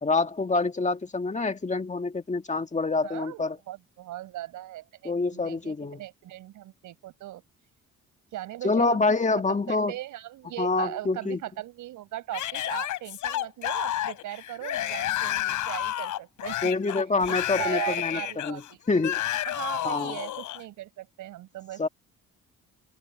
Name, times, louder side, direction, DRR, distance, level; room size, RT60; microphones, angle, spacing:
voice 1, 0.0-3.6 5.0-6.0 8.6-9.9 10.6-11.4 16.6-18.6 18.9-19.4 19.8-20.2 21.8-21.9, left 3 dB, 25° left, 1.9 m, -26 dB
voice 2, 3.0-7.4 8.3-9.0 9.5-16.7 17.3-18.8 19.4-21.8, right 14 dB, 85° right, 5.2 m, -38 dB
Yell / Screaming, 12.3-20.6, left 13 dB, 80° left, 5.0 m, -31 dB
cardioid pair, 90°, 30 cm